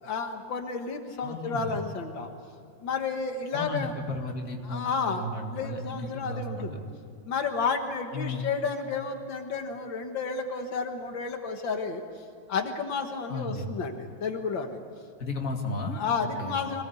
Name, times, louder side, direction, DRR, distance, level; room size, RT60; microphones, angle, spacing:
voice 1, 0.0-2.3 2.8-3.9 4.7-6.8 7.3-12.0 12.5-14.8 15.9-16.8, left 5 dB, 85° left, 5 dB, 2.2 m, -31 dB
voice 2, 1.2-1.7 3.5-6.9 8.1-8.5 13.3-13.7 15.2-16.6, left 2 dB, 45° left, 2 dB, 2.5 m, -34 dB
25.0 x 18.5 x 8.3 m, 2.4 s
omnidirectional pair, 2.0 m